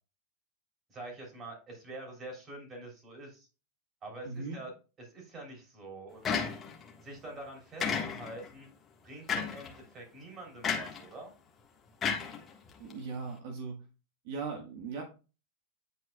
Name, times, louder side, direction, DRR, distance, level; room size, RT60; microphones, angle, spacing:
voice 1, 0.9-3.5 4.0-4.7 5.0-6.5 7.0-8.7 9.0-11.3, right 2 dB, 25° right, 1 dB, 3.3 m, -46 dB
voice 2, 4.2-4.6 12.8-13.8 14.2-15.0, right 4 dB, 65° right, 1 dB, 1.4 m, -38 dB
sound 1, 6.2-6.9 7.8-8.5 9.3-9.7 10.6-11.0 12.0-12.9, left 6 dB, 25° left, 1.5 m, -32 dB
10.0 x 4.4 x 2.3 m, 0.32 s
supercardioid pair, 135°, 0 cm